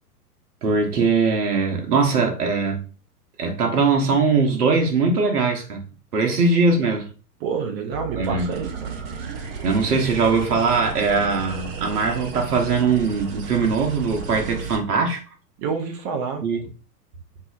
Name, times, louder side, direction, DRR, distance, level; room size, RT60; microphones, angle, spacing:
voice 1, 0.6-2.8 3.4-5.8 6.1-7.1 8.2-8.5 9.6-15.2 16.4-16.6, right 4 dB, 65° right, 1.2 m, -21 dB
voice 2, 7.4-8.9 15.6-16.4, right 5 dB, 20° right, 0.5 m, -28 dB
sound 1, 7.9-14.8, right 6 dB, 35° right, 1.1 m, -33 dB
5.3 x 2.8 x 2.4 m
figure-of-eight pair, 110°, 48 cm